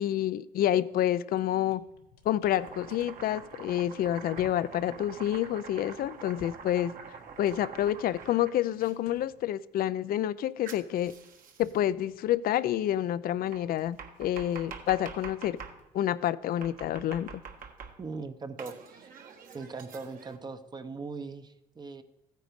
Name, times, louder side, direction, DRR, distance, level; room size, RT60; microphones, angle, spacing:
voice 1, 0.0-1.8 2.3-6.9 7.4-11.1 11.6-15.6 15.9-17.4, left 12 dB, 60° left, 16 dB, 0.5 m, -28 dB
sound 1, 0.9-1.1 1.4-10.3 10.5-16.5, left 4 dB, 80° left, 1.6 m, -58 dB
Domestic sounds home sounds, 2.5-8.9 10.7-11.8 13.5-15.8 16.6-18.2 18.6-20.4, right 6 dB, 55° right, 1.4 m, -46 dB
voice 2, 18.0-19.1 19.5-22.0, right 4 dB, 25° right, 9 dB, 0.8 m, -40 dB
14.5 x 9.2 x 5.2 m, 0.95 s
cardioid pair, 110°, 17 cm